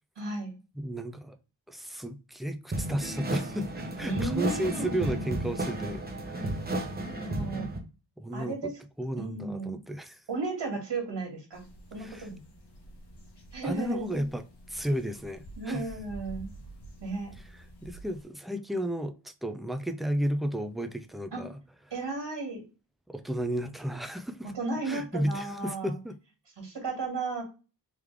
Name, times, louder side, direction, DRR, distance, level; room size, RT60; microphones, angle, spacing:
voice 1, 0.2-0.5 4.0-5.1 7.3-7.7 8.3-8.7 9.1-9.8 10.3-11.6 11.9-12.4 13.5-14.3 15.6-16.5 17.0-17.3 21.3-21.4 21.9-22.6 24.5-26.0 26.6-27.4, right 3 dB, 75° right, 1.9 m, -34 dB
voice 2, 0.8-1.4 1.7-3.7 4.0-6.6 7.4-7.7 8.2-8.7 9.0-10.2 12.0-12.3 13.6-15.8 17.5-21.5 23.1-24.5 24.9-26.2, right 1 dB, ahead, 0.3 m, -33 dB
sound 1, 2.7-7.8, right 1 dB, 25° right, 0.8 m, -33 dB
sound 2, 11.5-18.2, right 1 dB, 70° left, 1.4 m, -49 dB
3.7 x 3.1 x 3.4 m
wide cardioid pair, 115°, 42 cm